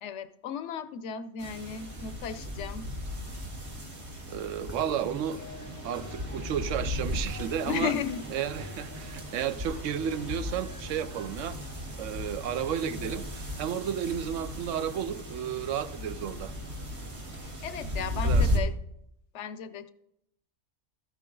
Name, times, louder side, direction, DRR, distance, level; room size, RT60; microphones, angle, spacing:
voice 1, 0.0-2.9 7.7-8.3 17.3-18.7 19.3-19.9, left 8 dB, 70° left, 0.9 m, -35 dB
sound 1, 1.4-18.6, left 1 dB, 60° right, 2.2 m, -35 dB
voice 2, 4.3-5.4 5.8-7.9 8.3-11.6 12.0-16.5 18.2-18.5, right 9 dB, 80° right, 0.9 m, -32 dB
sound 2, 4.6-13.2, equal, 15° right, 0.8 m, -47 dB
13.5 x 8.4 x 3.8 m
omnidirectional pair, 1.3 m